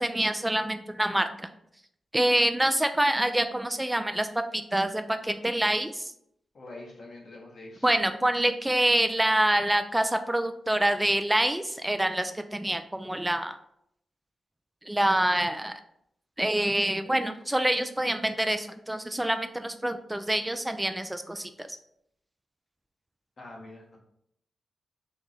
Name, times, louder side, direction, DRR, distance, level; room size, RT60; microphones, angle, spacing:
voice 1, 0.0-1.5 2.1-6.1 7.8-13.6 14.8-15.8 16.4-21.7, right 1 dB, 15° right, 8 dB, 0.3 m, -26 dB
voice 2, 6.5-7.9 23.4-24.0, left 2 dB, 60° left, -2 dB, 1.3 m, -45 dB
3.5 x 3.0 x 3.9 m, 0.73 s
supercardioid pair, 50°, 0 cm